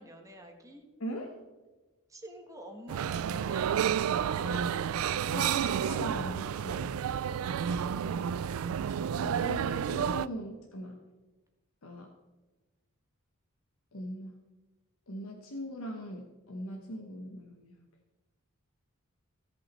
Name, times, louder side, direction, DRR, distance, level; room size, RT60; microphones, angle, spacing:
voice 1, 0.0-0.9 2.1-3.8, equal, 15° right, 3 dB, 1.3 m, -49 dB
voice 2, 1.0-1.3 4.4-4.7 5.2-6.9 9.1-11.0 11.8-12.1 13.9-14.4 15.1-17.8, equal, 80° left, 1 dB, 1.0 m, -40 dB
sound 1, 2.9-10.3, right 8 dB, 85° right, 0.3 m, -30 dB
16.5 x 5.6 x 4.2 m, 1.2 s
head